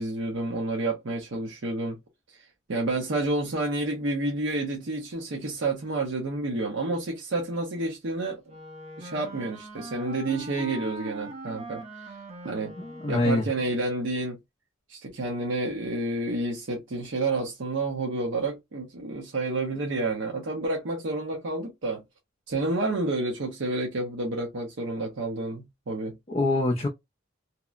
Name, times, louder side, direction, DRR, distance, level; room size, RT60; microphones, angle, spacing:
voice 1, 0.0-2.0 2.7-8.4 9.0-12.1 12.4-12.8 13.1-14.4 14.9-22.0 22.5-26.2, right 2 dB, 65° right, 0.7 m, -29 dB
Wind instrument woodwind instrument, 8.5-13.8, right 1 dB, 35° right, 0.7 m, -41 dB
voice 2, 12.8-13.4 26.3-26.9, left 2 dB, 30° left, 0.4 m, -25 dB
2.8 x 2.0 x 2.3 m
head